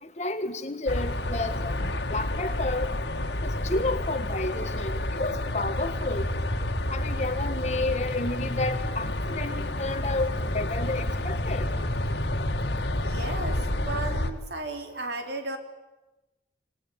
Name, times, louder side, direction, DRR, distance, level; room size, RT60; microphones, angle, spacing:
voice 1, 0.0-2.9 3.4-6.3 6.9-11.7, left 2 dB, 40° left, 8 dB, 1.8 m, -31 dB
sound 1, 0.9-14.3, left 1 dB, 90° left, 1.8 m, -29 dB
voice 2, 13.0-15.6, right 2 dB, 80° right, 5 dB, 3.4 m, -35 dB
26.0 x 19.0 x 9.3 m, 1.1 s
head